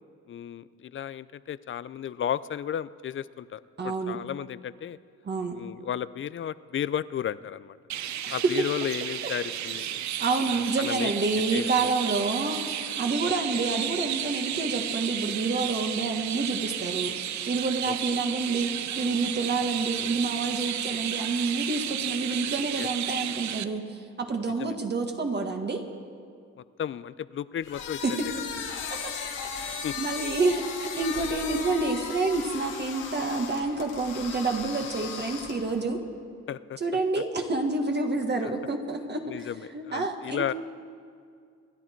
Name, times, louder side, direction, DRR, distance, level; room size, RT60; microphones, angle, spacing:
voice 1, 0.3-5.0 5.5-7.8 8.3-10.0 10.5-11.1 11.5-11.9 13.5-13.6 17.9-18.0 22.8-22.9 24.6-24.8 26.6-28.2 29.8-29.9 36.5-36.8 37.1-37.2 38.4-38.5 39.3-40.5, left 9 dB, 40° left, 17 dB, 0.5 m, -34 dB
voice 2, 3.8-4.2 5.3-5.6 8.3-8.5 10.2-17.1 17.5-25.8 28.0-28.2 28.9-29.1 29.6-36.0 36.8-40.5, right 3 dB, 35° right, 3 dB, 1.8 m, -28 dB
Chirp tweet, 7.9-23.6, right 11 dB, 65° right, 0.7 m, -32 dB
sound 1, 27.6-35.8, left 6 dB, 90° left, 2.3 m, -36 dB
27.0 x 11.0 x 4.6 m, 2.2 s
cardioid pair, 90°, 30 cm